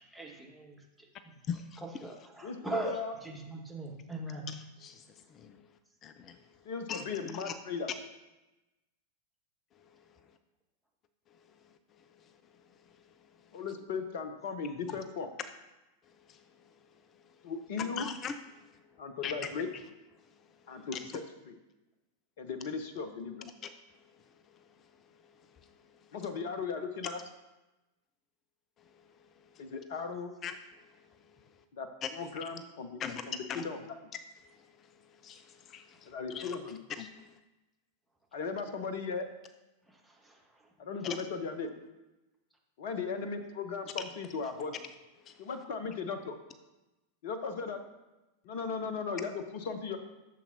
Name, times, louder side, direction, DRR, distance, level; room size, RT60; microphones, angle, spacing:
voice 1, 0.0-0.8 2.0-4.5 39.9-40.7, right 2 dB, ahead, 1 dB, 1.7 m, -41 dB
voice 2, 1.5-1.8 4.5-5.7 6.0-6.4 6.9-7.1 7.3-7.5 9.9-10.0 12.2-12.3 13.0-13.1 16.3-16.7 17.1-17.2 17.8-18.6 19.2-19.4 20.9-21.0 23.6-23.7 24.1-24.2 24.5-24.6 25.2-25.3 25.6-26.1 29.4-29.7 30.4-30.6 31.0-31.4 32.0-32.1 33.0-33.6 34.4-36.6 37.0-37.3 41.0-41.2 44.0-44.1 45.2-45.5, left 7 dB, 30° left, 10 dB, 0.5 m, -42 dB
voice 3, 2.4-3.1 6.6-7.9 13.5-15.3 17.4-18.1 19.0-19.7 20.7-21.5 22.4-23.4 26.1-27.2 29.6-30.3 31.7-33.0 33.3-33.8 36.1-36.8 38.3-39.3 40.8-41.7 42.8-44.7 45.4-46.4 47.2-47.8 48.4-50.0, left 5 dB, 50° left, 8 dB, 0.9 m, -37 dB
12.5 x 7.2 x 2.8 m, 1.0 s
figure-of-eight pair, 90°, 0 cm